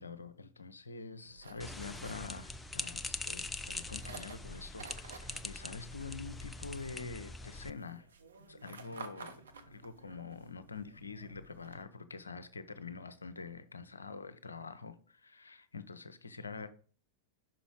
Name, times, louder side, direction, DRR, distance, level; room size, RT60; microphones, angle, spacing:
voice 1, 0.0-8.1 8.5-16.7, left 4 dB, 75° left, 0.6 m, -46 dB
sound 1, 1.2-11.8, right 4 dB, 70° right, 0.8 m, -53 dB
sound 2, 1.6-7.7, left 2 dB, 10° left, 0.4 m, -43 dB
5.8 x 5.0 x 4.9 m
figure-of-eight pair, 90°, 0 cm